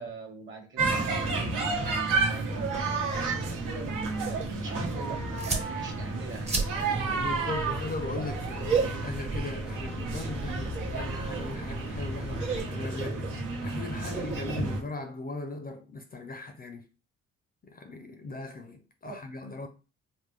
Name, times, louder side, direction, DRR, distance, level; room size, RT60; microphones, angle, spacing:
voice 1, 0.0-2.6 2.9-7.0 19.0-19.2, right 3 dB, 40° right, 1.2 m, -43 dB
sound 1, 0.8-14.8, right 3 dB, 85° right, 1.1 m, -31 dB
sound 2, 2.3-12.6, right 3 dB, 20° right, 0.8 m, -39 dB
voice 2, 7.0-13.3 13.6-16.9 17.6-19.7, left 2 dB, 30° left, 0.5 m, -38 dB
3.7 x 2.1 x 3.2 m
cardioid pair, 90°, 30 cm